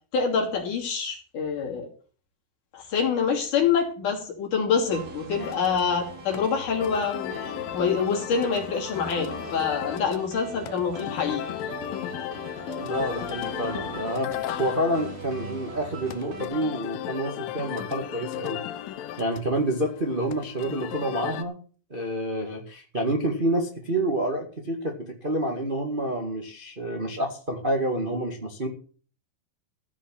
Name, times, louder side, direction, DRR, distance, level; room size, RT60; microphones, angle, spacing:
voice 1, 0.1-1.9 2.7-7.3 7.7-11.4, left 6 dB, 60° left, 1 dB, 4.3 m, -26 dB
sound 1, 4.8-16.5, right 3 dB, 80° right, 4.8 m, -40 dB
sound 2, 5.4-21.4, left 13 dB, 80° left, 2.6 m, -36 dB
voice 2, 12.8-18.6 19.2-21.6 21.9-28.7, right 1 dB, 25° right, 1 dB, 1.1 m, -28 dB
15.0 x 5.5 x 8.6 m, 0.40 s
omnidirectional pair, 4.1 m